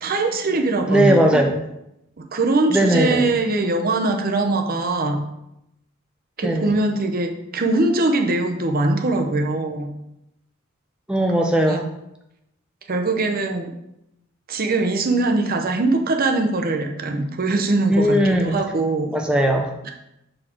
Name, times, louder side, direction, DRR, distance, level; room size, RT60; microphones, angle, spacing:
voice 1, 0.0-1.4 2.3-5.2 6.4-9.9 11.7-11.8 12.9-13.7 14.5-19.1, right 2 dB, 45° right, 4 dB, 0.8 m, -22 dB
voice 2, 0.9-1.6 2.7-3.3 6.4-6.7 11.1-11.9 17.9-18.6 19.1-19.7, right 1 dB, 5° right, 2 dB, 0.5 m, -18 dB
6.4 x 4.3 x 4.4 m, 0.84 s
head